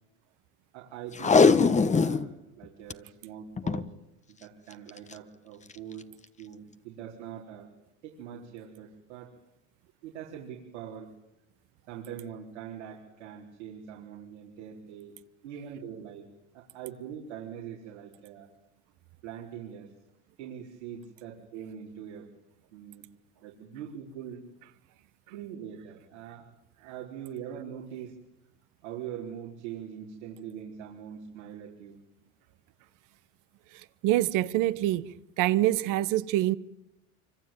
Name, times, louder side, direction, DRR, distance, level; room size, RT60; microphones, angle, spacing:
voice 1, 0.7-3.9 4.3-6.1 6.4-7.7 8.0-9.3 10.0-11.1 11.9-15.1 15.4-16.3 16.5-18.5 19.2-19.9 20.4-22.3 22.7-23.1 23.4-24.5 25.3-26.5 26.8-28.1 28.8-32.0, right 9 dB, 90° right, 4.4 m, -42 dB
Packing tape duct tape, 1.1-2.3 2.6-2.9 3.6-3.9 4.9-5.1 5.7-5.8, left 4 dB, 20° left, 1.3 m, -21 dB
voice 2, 34.0-35.1 35.4-36.6, right 15 dB, 65° right, 1.3 m, -25 dB
25.5 x 25.0 x 9.2 m
supercardioid pair, 95°, 34 cm